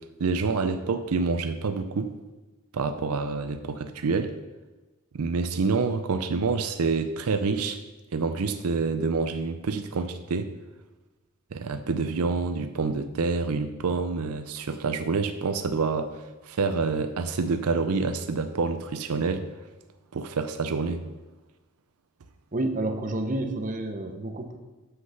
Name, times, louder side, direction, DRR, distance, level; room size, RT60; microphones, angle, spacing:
voice 1, 0.2-2.1 2.7-4.3 5.1-7.8 8.1-10.5 11.5-19.5 20.1-21.0, right 4 dB, 85° right, 9 dB, 0.5 m, -27 dB
voice 2, 22.5-24.6, right 2 dB, 35° right, 5 dB, 0.9 m, -29 dB
7.9 x 6.2 x 5.8 m, 1.1 s
head